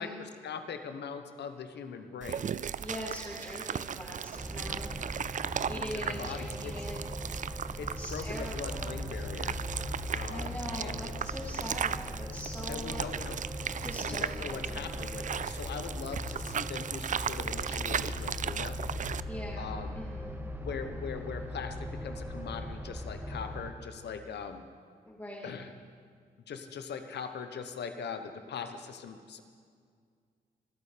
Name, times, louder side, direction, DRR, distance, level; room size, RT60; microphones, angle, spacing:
voice 1, 0.0-2.5 5.7-6.7 7.8-9.6 10.1-11.1 12.7-13.4 14.0-18.8 19.6-20.0 20.6-24.7 25.4-25.7 26.5-29.4, left 6 dB, 75° left, 8 dB, 1.1 m, -41 dB
sound 1, 2.2-19.2, right 8 dB, 45° right, 0.4 m, -37 dB
voice 2, 2.8-4.9 5.4-7.0 8.0-9.2 10.3-13.0 13.8-14.8 19.2-20.5 25.0-25.5, left 1 dB, 15° left, -5 dB, 3.0 m, -42 dB
sound 2, 4.4-23.7, equal, 10° right, 1.4 m, -39 dB
24.5 x 8.5 x 5.2 m, 2.1 s
supercardioid pair, 50°, 18 cm